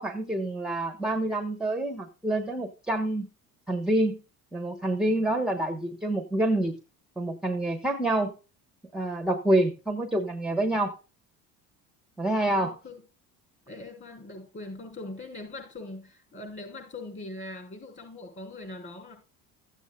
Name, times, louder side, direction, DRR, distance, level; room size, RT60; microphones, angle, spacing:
voice 1, 0.0-3.3 3.7-4.2 4.5-6.7 7.2-8.3 8.9-10.9 12.2-12.7, right 1 dB, ahead, 4 dB, 1.0 m, -27 dB
voice 2, 12.5-13.0 13.7-19.2, left 2 dB, 30° left, 4 dB, 6.1 m, -41 dB
14.5 x 8.2 x 2.2 m, 0.32 s
cardioid pair, 125°, 36 cm